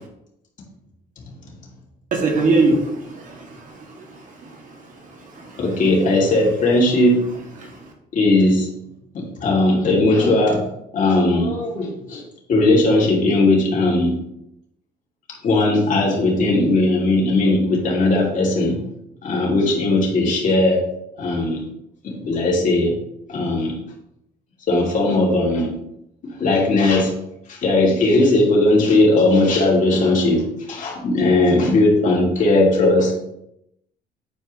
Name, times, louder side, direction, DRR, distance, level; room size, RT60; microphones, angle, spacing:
voice 1, 2.1-5.7 7.6-7.9, right 3 dB, 50° right, 1 dB, 2.0 m, -24 dB
voice 2, 5.6-7.2 8.1-8.7 9.1-10.6 10.9-12.2 12.5-14.2 15.4-18.8 19.2-20.8 21.2-21.6 22.0-22.9 23.3-23.8 24.7-25.7 26.2-27.1 27.5-33.1, left 2 dB, 50° left, -2 dB, 2.6 m, -18 dB
9.5 x 4.6 x 3.1 m, 0.81 s
cardioid pair, 110°, 17 cm